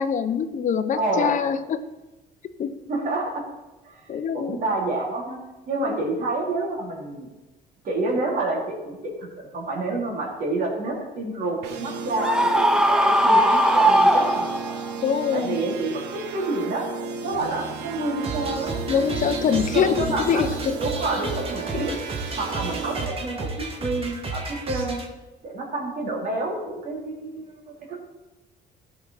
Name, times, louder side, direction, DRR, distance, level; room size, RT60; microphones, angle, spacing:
voice 1, 0.0-1.8 2.6-2.7 4.1-4.6 5.8-6.0 15.0-15.6 18.9-20.7 21.7-21.8, left 7 dB, 50° left, 10 dB, 0.8 m, -24 dB
voice 2, 0.9-1.4 2.9-3.5 3.8-5.4 5.7-7.3 7.8-14.5 15.3-16.9 17.2-18.8 19.7-20.4 20.8-21.9 22.4-25.0 25.4-28.0, right 2 dB, 55° right, -2 dB, 3.2 m, -28 dB
sound 1, 11.6-23.1, right 5 dB, 85° right, 1.0 m, -34 dB
Screaming, 12.2-14.9, right 1 dB, 5° right, 0.6 m, -19 dB
sound 2, 18.2-25.1, right 3 dB, 35° right, 1.8 m, -33 dB
14.5 x 5.8 x 4.1 m, 1.1 s
cardioid pair, 110°, 17 cm